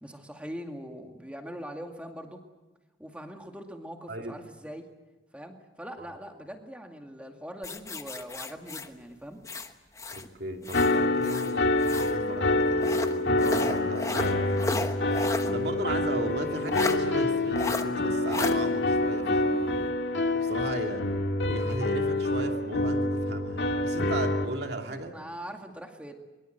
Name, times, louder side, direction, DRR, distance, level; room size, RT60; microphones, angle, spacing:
voice 1, 0.0-2.4 3.0-4.9 5.3-9.4 25.1-26.1, equal, 5° right, 4 dB, 2.2 m, -42 dB
sound 1, 7.6-10.3 10.6-12.2 12.8-15.5 15.9-16.0 16.7-17.0 17.6-17.9 18.3-18.5, left 2 dB, 15° left, 1.2 m, -34 dB
voice 2, 10.1-19.9 20.3-21.1 21.5-25.2, right 1 dB, 65° right, 3 dB, 2.7 m, -36 dB
sound 2, 10.7-24.4, left 2 dB, 80° left, 1.9 m, -27 dB
23.5 x 23.0 x 8.0 m, 1.1 s
head